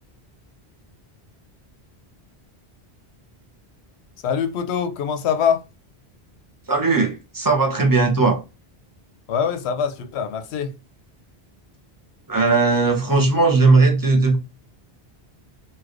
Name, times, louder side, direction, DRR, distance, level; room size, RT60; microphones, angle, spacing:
voice 1, 4.2-5.7 9.3-10.7, left 7 dB, 90° left, 0.8 m, -23 dB
voice 2, 6.7-8.4 12.3-14.4, right 3 dB, 25° right, 0.6 m, -17 dB
3.2 x 2.7 x 2.4 m
omnidirectional pair, 1.1 m